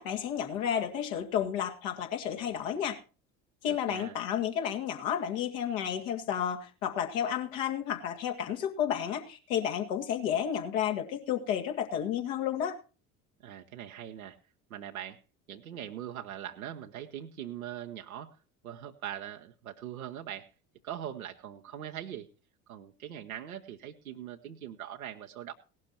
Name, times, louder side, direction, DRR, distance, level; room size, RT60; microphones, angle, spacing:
voice 1, 0.0-3.0 3.6-12.8, left 9 dB, 65° left, 4 dB, 2.2 m, -31 dB
voice 2, 3.7-4.2 13.4-14.4 14.7-15.2 15.5-18.4 18.6-20.5 20.8-22.3 22.7-25.5, right 10 dB, 80° right, 3 dB, 0.9 m, -41 dB
18.0 x 12.0 x 2.8 m, 0.35 s
figure-of-eight pair, 60°, 42 cm